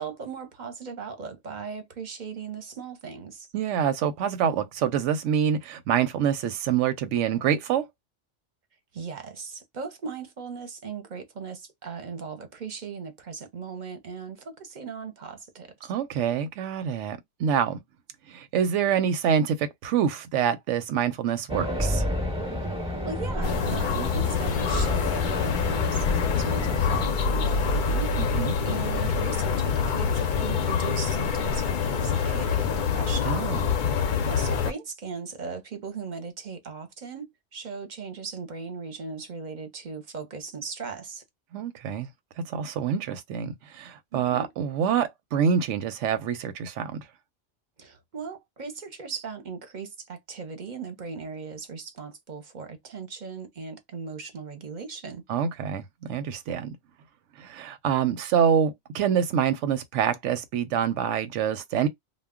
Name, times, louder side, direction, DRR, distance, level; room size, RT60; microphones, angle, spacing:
voice 1, 0.0-3.5 8.9-15.9 23.1-28.1 28.7-33.4 34.3-41.2 44.1-44.5 47.8-55.2, right 5 dB, 50° right, 0.7 m, -38 dB
voice 2, 3.5-7.9 15.9-17.8 18.3-22.0 28.2-28.5 33.3-33.6 41.5-42.1 42.4-47.0 55.3-56.8 57.4-61.9, right 8 dB, 90° right, 0.9 m, -26 dB
Race car auto racing, 21.5-27.1, left 1 dB, 5° right, 0.7 m, -30 dB
sound 1, 23.4-34.7, left 6 dB, 55° left, 0.5 m, -26 dB
2.2 x 2.1 x 3.5 m
omnidirectional pair, 1.2 m